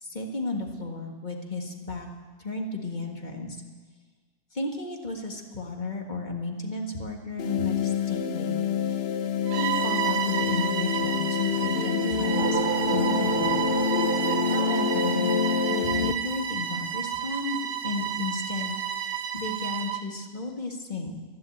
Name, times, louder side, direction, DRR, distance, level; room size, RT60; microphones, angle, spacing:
voice 1, 0.0-2.1 2.4-3.6 4.5-8.6 8.9-9.0 9.6-13.6 14.5-15.3 15.7-18.8 19.3-21.2, left 3 dB, 30° left, 2 dB, 1.7 m, -33 dB
sound 1, 7.4-16.1, left 7 dB, 70° left, 0.5 m, -27 dB
Bowed string instrument, 9.5-20.1, right 10 dB, 65° right, 1.2 m, -31 dB
sound 2, 12.0-16.6, right 9 dB, 85° right, 1.3 m, -33 dB
12.5 x 11.5 x 8.5 m, 1.5 s
omnidirectional pair, 1.7 m